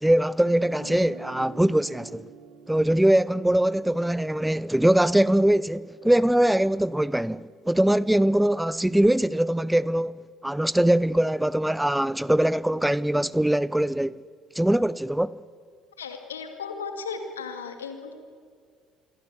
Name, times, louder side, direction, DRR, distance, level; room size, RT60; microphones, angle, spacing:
voice 1, 0.0-2.3 2.7-14.2 14.5-15.4, right 1 dB, 5° right, 0.5 m, -22 dB
Guitar, 0.7-6.7, right 7 dB, 80° right, 3.0 m, -49 dB
voice 2, 16.0-18.1, left 5 dB, 85° left, 2.3 m, -35 dB
26.5 x 24.0 x 6.8 m
figure-of-eight pair, 55°, 0 cm